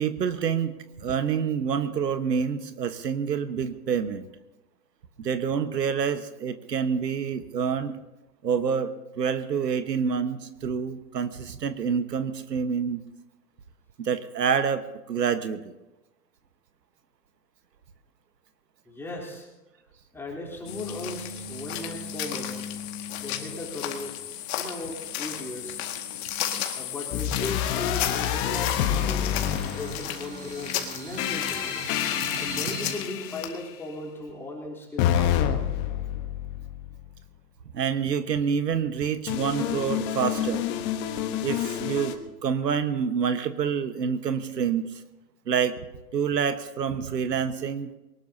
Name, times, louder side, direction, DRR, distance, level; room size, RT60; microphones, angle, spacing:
voice 1, 0.0-4.3 5.2-7.9 8.4-13.0 14.0-15.7 37.7-40.7 41.4-42.1 42.4-45.0 45.5-45.8 46.1-47.9, right 7 dB, 80° right, 10 dB, 1.4 m, -27 dB
voice 2, 18.9-19.5 20.1-22.6 23.2-24.2 24.5-25.8 26.7-29.3 29.6-31.9 32.4-35.4, left 2 dB, 5° left, -2 dB, 3.5 m, -37 dB
sound 1, 20.6-33.5, left 10 dB, 40° left, 2.0 m, -34 dB
sound 2, 27.1-30.4 31.2-33.7 35.0-37.1 39.3-42.1, left 10 dB, 20° left, 1.0 m, -28 dB
sound 3, 28.7-32.9, right 4 dB, 20° right, 1.9 m, -41 dB
22.5 x 19.5 x 2.8 m, 1.0 s
hypercardioid pair, 140°, 48 cm